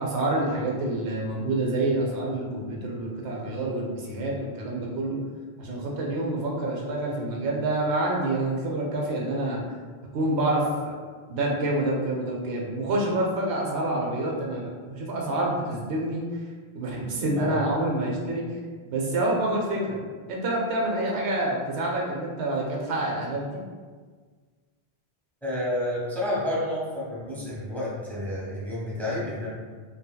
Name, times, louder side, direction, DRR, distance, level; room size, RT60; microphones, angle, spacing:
voice 1, 0.0-5.2 5.6-9.6 10.1-10.9 11.3-16.2 16.7-18.4 18.9-20.0 20.3-23.6, right 2 dB, 85° right, -2 dB, 0.9 m, -27 dB
voice 2, 17.4-17.8 25.4-29.5, left 1 dB, ahead, -7 dB, 0.6 m, -30 dB
3.0 x 2.7 x 2.2 m, 1.5 s
omnidirectional pair, 1.1 m